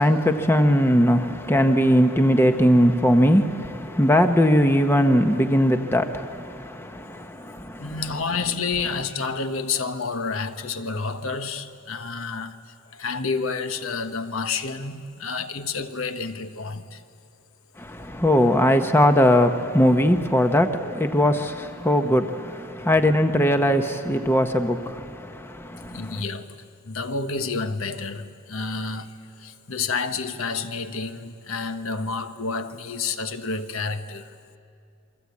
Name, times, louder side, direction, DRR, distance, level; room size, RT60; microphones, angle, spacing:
voice 1, 0.0-8.0 17.8-26.2, equal, 10° left, 0.8 m, -20 dB
voice 2, 7.8-12.6 12.9-17.0 25.9-26.6 26.8-34.3, left 4 dB, 70° left, 1.2 m, -29 dB
28.0 x 24.0 x 8.5 m
head